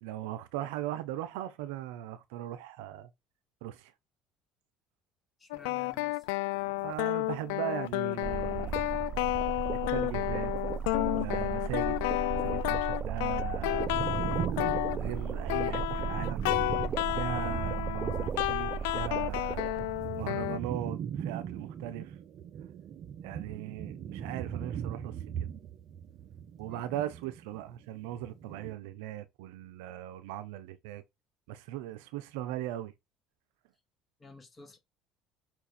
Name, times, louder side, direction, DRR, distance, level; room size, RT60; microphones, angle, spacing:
voice 1, 0.0-3.1 3.6-3.9 6.8-9.0 9.9-10.5 10.9-12.0 12.3-13.9 15.0-16.5 17.1-19.8 20.2-22.2 23.2-25.5 26.6-31.0 31.5-32.9, right 12 dB, 90° right, 0.9 m, -39 dB
voice 2, 5.4-6.3 26.7-26.9 34.2-34.8, left 3 dB, 20° left, 2.5 m, -52 dB
sound 1, 5.5-20.6, left 21 dB, 90° left, 0.3 m, -32 dB
sound 2, 8.2-20.1, right 7 dB, 40° right, 0.5 m, -36 dB
sound 3, 13.6-18.9 19.1-27.7 28.1-28.7, right 8 dB, 55° right, 1.3 m, -39 dB
6.0 x 4.6 x 4.4 m
supercardioid pair, 95°, 0 cm